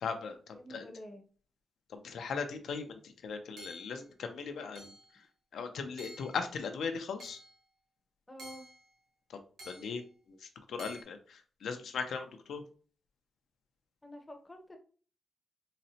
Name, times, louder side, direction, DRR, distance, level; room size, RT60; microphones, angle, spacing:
voice 1, 0.0-0.9 1.9-4.9 5.5-7.4 9.7-10.0 10.3-12.6, left 5 dB, 75° left, 7 dB, 0.5 m, -38 dB
voice 2, 0.5-1.3 8.3-8.7 14.0-14.8, equal, 15° left, 4 dB, 0.6 m, -48 dB
Hammer / Chink clink, 3.6-4.0 4.8-5.1 6.0-6.4 7.2-7.6 8.4-8.9 9.6-10.0 10.8-11.0, right 1 dB, 65° right, 1.0 m, -50 dB
3.9 x 2.1 x 2.7 m, 0.41 s
wide cardioid pair, 120°, 0 cm